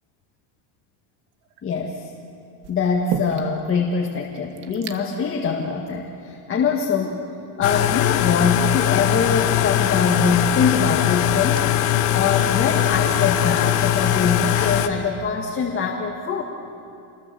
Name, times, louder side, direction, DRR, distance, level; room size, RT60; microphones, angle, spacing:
sound 1, 1.4-1.8 2.6-3.7 4.0-4.1 4.3-5.0 5.8-5.9 6.6-7.4 9.1-9.2 9.9-14.9, right 8 dB, 80° right, 2.0 m, -38 dB
voice 1, 1.6-2.1 2.7-7.2 7.6-16.4, left 5 dB, 25° left, 0 dB, 1.8 m, -23 dB
sound 2, 7.6-14.9, left 12 dB, 85° left, 1.6 m, -20 dB
27.5 x 21.5 x 7.0 m, 2.6 s
cardioid pair, 150°, 46 cm